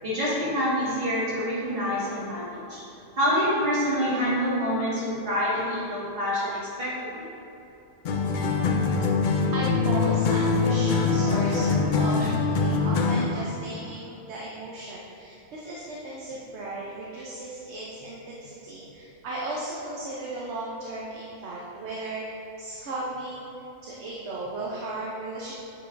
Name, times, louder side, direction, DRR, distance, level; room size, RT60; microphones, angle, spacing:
voice 1, 0.0-2.8 3.2-7.3 12.2-12.3, equal, 45° right, -9 dB, 1.9 m, -27 dB
sound 1, 8.0-13.4, left 4 dB, 80° left, 0.4 m, -23 dB
voice 2, 9.5-23.5 23.8-25.5, right 2 dB, 60° right, -5 dB, 1.0 m, -36 dB
7.7 x 4.8 x 2.6 m, 3.0 s
omnidirectional pair, 1.4 m